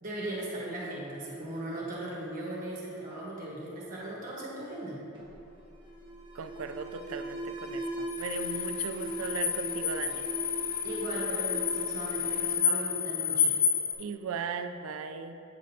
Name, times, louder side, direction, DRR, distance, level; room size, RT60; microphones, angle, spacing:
voice 1, 0.0-5.0 10.8-13.5, right 1 dB, 40° right, -5 dB, 1.2 m, -38 dB
Alarm, 5.1-13.7, right 2 dB, 20° right, 1.3 m, -40 dB
voice 2, 6.3-10.3 14.0-15.4, right 5 dB, 70° right, 9 dB, 0.4 m, -37 dB
sound 1, 8.1-13.9, left 7 dB, 35° left, 0.6 m, -30 dB
8.4 x 6.2 x 2.7 m, 2.8 s
head